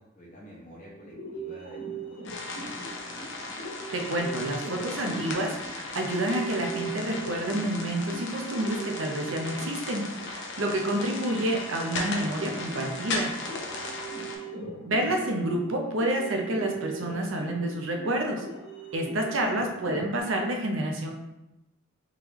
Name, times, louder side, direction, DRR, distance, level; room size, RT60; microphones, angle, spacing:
voice 1, 0.0-2.4 13.6-14.0, equal, 40° left, -5 dB, 1.2 m, -49 dB
sound 1, 0.9-20.2, right 3 dB, 90° left, 1.5 m, -41 dB
sound 2, 2.2-14.4, left 3 dB, 60° left, 0.7 m, -37 dB
voice 2, 3.9-13.3 14.8-18.4 18.9-21.1, right 1 dB, 65° right, 2 dB, 0.6 m, -29 dB
3.7 x 3.2 x 3.0 m, 0.94 s
head